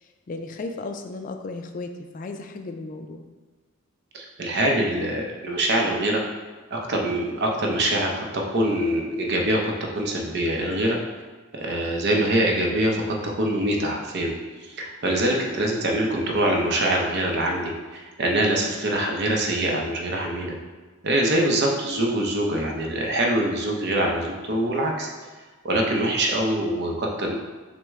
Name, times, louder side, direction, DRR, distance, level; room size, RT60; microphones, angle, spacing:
voice 1, 0.3-3.3, left 3 dB, 40° left, 6 dB, 0.3 m, -35 dB
voice 2, 4.1-6.2 6.7-11.0 11.5-14.3 14.6-20.5 21.0-25.1 25.6-27.4, right 1 dB, 55° right, 0 dB, 0.6 m, -24 dB
6.2 x 2.1 x 3.5 m, 1.3 s
head